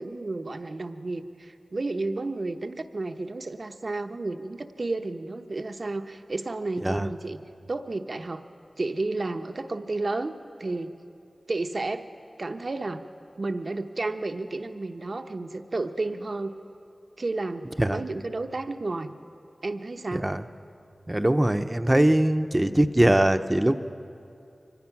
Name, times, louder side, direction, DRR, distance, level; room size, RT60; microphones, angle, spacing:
voice 1, 0.0-7.4 7.7-8.4 8.8-10.9 11.5-12.1 12.4-13.0 13.4-16.5 17.2-19.1 19.6-20.3, right 2 dB, 60° right, 7 dB, 0.9 m, -32 dB
voice 2, 21.1-23.7, right 1 dB, 20° right, 9 dB, 0.8 m, -22 dB
24.0 x 18.5 x 5.9 m, 2.6 s
wide cardioid pair, 50°, 0 cm